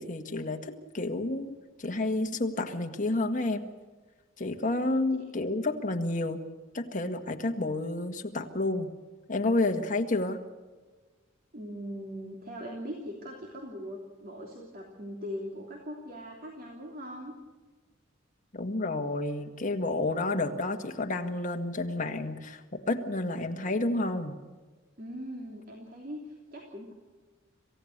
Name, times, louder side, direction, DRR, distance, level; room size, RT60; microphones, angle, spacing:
voice 1, 0.0-3.7 4.4-6.4 6.7-8.9 9.3-10.4 18.5-24.3, left 2 dB, 40° left, 4 dB, 1.8 m, -30 dB
voice 2, 11.5-17.3 25.0-26.9, equal, 45° right, 0 dB, 3.2 m, -40 dB
27.0 x 16.5 x 6.7 m, 1.3 s
head